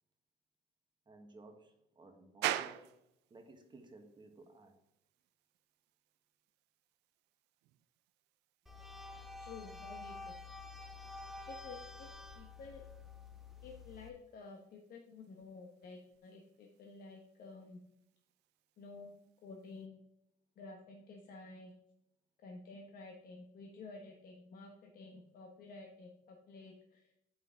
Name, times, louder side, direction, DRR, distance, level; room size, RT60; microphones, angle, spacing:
voice 1, 1.1-2.9 3.3-4.8, right 2 dB, 25° right, 4 dB, 1.2 m, -57 dB
sound 1, 2.4-19.9, right 13 dB, 85° right, 0.5 m, -49 dB
sound 2, 8.7-14.1, left 3 dB, ahead, 0.8 m, -49 dB
voice 2, 9.4-10.3 11.5-12.1 12.3-12.8 13.6-17.8 18.8-20.0 20.6-21.7 22.4-27.1, left 3 dB, 60° left, 2 dB, 1.1 m, -52 dB
8.1 x 5.7 x 3.7 m, 0.80 s
cardioid pair, 110°, 17 cm